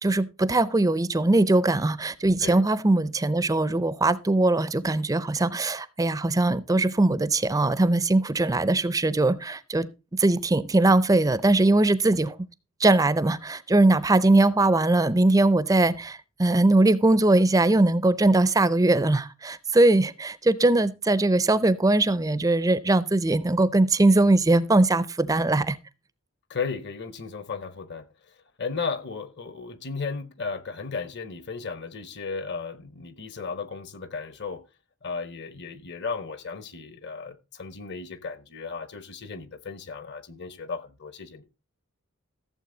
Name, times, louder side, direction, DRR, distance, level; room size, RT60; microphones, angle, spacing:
voice 1, 0.0-12.4 12.8-25.8, right 2 dB, 15° right, 0.5 m, -21 dB
voice 2, 26.5-28.1 28.6-34.6 35.0-41.5, left 5 dB, 50° left, 1.0 m, -35 dB
14.5 x 7.4 x 3.8 m
head